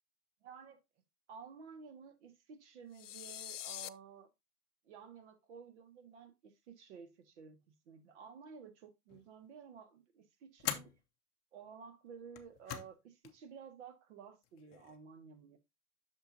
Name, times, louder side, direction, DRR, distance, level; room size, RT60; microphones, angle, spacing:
voice 1, 0.4-0.8 1.3-4.3 4.8-10.9 11.5-15.6, right 6 dB, 50° right, 1.8 m, -53 dB
sound 1, 2.9-3.9, left 13 dB, 55° left, 0.5 m, -44 dB
sound 2, 9.1-9.5 10.6-11.0 12.2-13.0 13.2-13.3 14.4-15.0, left 11 dB, 25° left, 0.8 m, -42 dB
8.0 x 6.5 x 2.7 m
hypercardioid pair, 135°, 45 cm